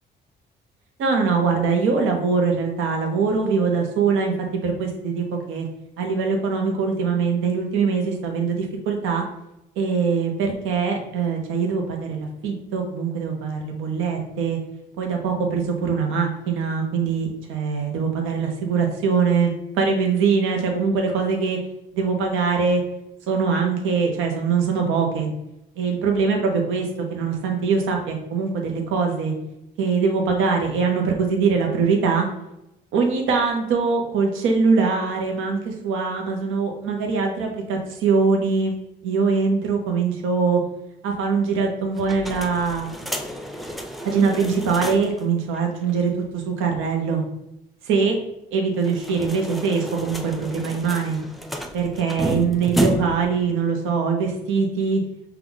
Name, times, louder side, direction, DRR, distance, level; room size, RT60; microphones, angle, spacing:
voice 1, 1.0-5.7 6.0-9.2 9.8-14.6 15.0-21.6 21.9-22.8 23.3-25.3 25.8-29.3 29.8-32.3 32.9-38.7 39.0-40.6 41.0-42.9 44.0-47.2 47.8-48.2 48.5-51.2 51.7-55.0, right 5 dB, 90° right, 2 dB, 1.0 m, -22 dB
sound 1, 42.0-45.2 45.5-45.6 45.9-46.0 48.7-53.3, right 1 dB, ahead, 0.5 m, -30 dB
5.7 x 2.4 x 3.9 m, 0.86 s
cardioid pair, 90°, 20 cm